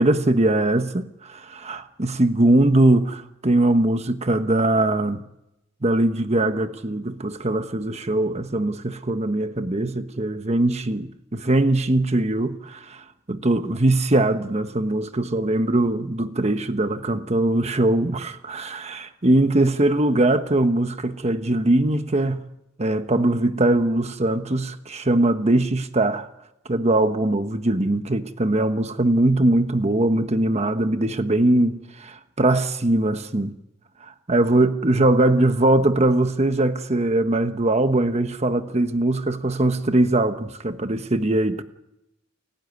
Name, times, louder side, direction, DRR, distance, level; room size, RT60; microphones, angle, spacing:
voice 1, 0.0-5.2 5.8-22.4 22.8-26.3 26.7-33.5 34.0-41.6, right 1 dB, 35° right, 1.1 m, -21 dB
30.0 x 16.0 x 9.7 m
head